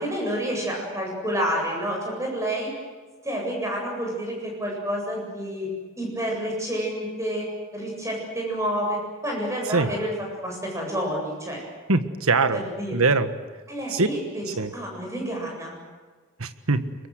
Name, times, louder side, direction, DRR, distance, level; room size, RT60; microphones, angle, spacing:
voice 1, 0.0-2.7 3.2-5.7 6.0-7.5 7.7-9.0 9.2-10.1 10.4-11.6 12.5-13.0 13.7-15.8, equal, 15° right, -1 dB, 8.0 m, -29 dB
voice 2, 11.9-12.6 12.9-13.3 13.9-14.1 14.6-14.7 16.4-16.8, right 3 dB, 80° right, 10 dB, 1.5 m, -22 dB
25.5 x 22.5 x 8.1 m, 1.4 s
head